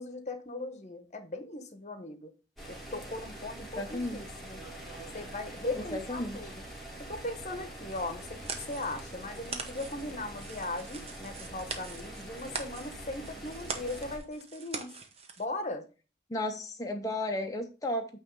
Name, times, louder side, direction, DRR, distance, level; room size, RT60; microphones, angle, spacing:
voice 1, 0.0-2.3 2.7-4.6 5.1-6.6 7.0-8.4 8.7-14.9 15.4-15.9, left 2 dB, 40° left, 1.0 m, -38 dB
sound 1, 2.6-14.2, right 1 dB, ahead, 2.0 m, -44 dB
voice 2, 3.6-4.2 5.9-6.4 16.3-18.1, left 1 dB, 20° left, 0.6 m, -34 dB
sound 2, 7.9-15.4, right 4 dB, 35° right, 0.9 m, -43 dB
9.0 x 3.1 x 5.3 m
head